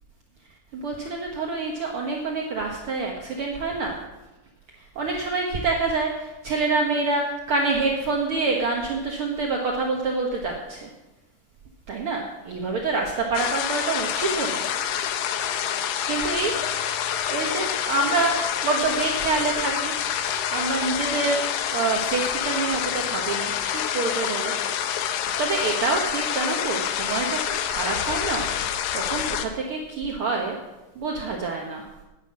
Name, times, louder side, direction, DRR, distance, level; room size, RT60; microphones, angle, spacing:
voice 1, 0.7-4.0 4.7-10.9 11.9-14.7 16.0-16.5 17.3-19.9 20.5-24.5 25.1-30.5 30.9-31.9, right 3 dB, 80° right, 0 dB, 1.2 m, -27 dB
sound 1, 13.3-29.5, left 9 dB, 75° left, 2.3 m, -27 dB
10.5 x 10.0 x 7.5 m, 1.0 s
omnidirectional pair, 4.5 m